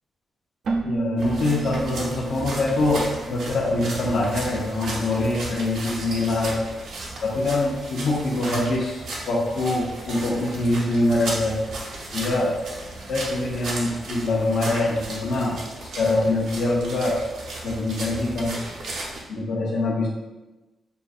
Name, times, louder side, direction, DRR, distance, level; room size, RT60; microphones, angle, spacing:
Keyboard (musical), 0.6-4.3, right 4 dB, 55° right, 0.4 m, -32 dB
voice 1, 0.8-6.6 7.2-11.6 12.1-12.5 13.1-15.6 16.0-17.2 17.6-18.6 19.3-20.1, left 2 dB, 80° left, -5 dB, 0.9 m, -24 dB
sound 1, 1.2-19.2, right 2 dB, 75° right, 0.8 m, -35 dB
6.6 x 2.6 x 2.4 m, 1.1 s
wide cardioid pair, 175°, 0 cm